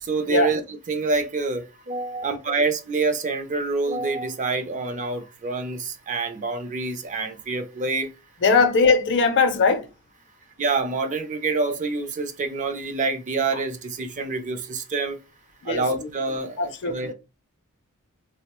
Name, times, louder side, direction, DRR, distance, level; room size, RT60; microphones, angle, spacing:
voice 1, 0.0-8.1 10.6-15.2 15.6-17.1, right 3 dB, 35° right, 0.4 m, -27 dB
voice 2, 8.4-9.9 15.6-15.9 16.6-17.1, left 4 dB, 55° left, 0.5 m, -20 dB
3.5 x 2.0 x 2.9 m
head